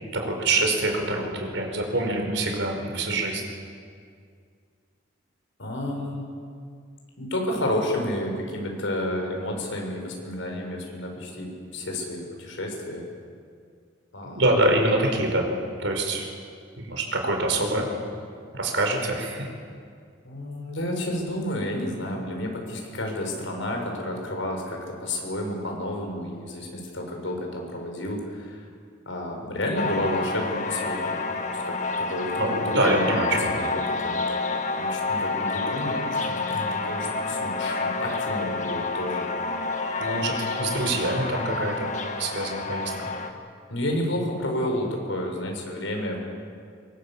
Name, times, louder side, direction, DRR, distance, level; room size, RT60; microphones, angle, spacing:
voice 1, 0.1-3.4 14.2-15.5 15.8-16.3 16.8-17.9 18.5-19.5 32.4-33.7 40.0-42.9, right 2 dB, 75° right, 2 dB, 5.3 m, -25 dB
voice 2, 5.6-6.3 7.2-13.0 14.1-14.4 20.2-28.7 29.1-31.2 31.5-34.2 34.8-39.3 43.7-46.2, left 1 dB, 85° left, 2 dB, 6.2 m, -31 dB
sound 1, 29.8-43.3, left 3 dB, 40° left, 1.9 m, -29 dB
24.5 x 23.5 x 7.5 m, 2.2 s
head